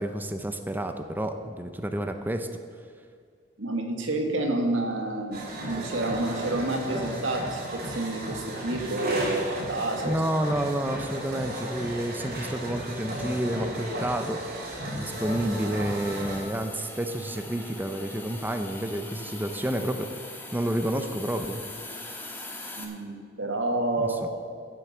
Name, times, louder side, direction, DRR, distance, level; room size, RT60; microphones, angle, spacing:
voice 1, 0.0-2.5 10.0-14.4 14.9-21.6 24.0-24.3, right 1 dB, 10° right, 7 dB, 0.6 m, -30 dB
voice 2, 3.6-10.2 22.8-24.4, right 2 dB, 85° right, 3 dB, 1.8 m, -29 dB
sound 1, 5.3-16.4, right 1 dB, 55° right, 2.7 m, -34 dB
Hiss, 15.0-22.8, left 2 dB, 10° left, 1.6 m, -42 dB
13.0 x 7.7 x 7.2 m, 2.1 s
head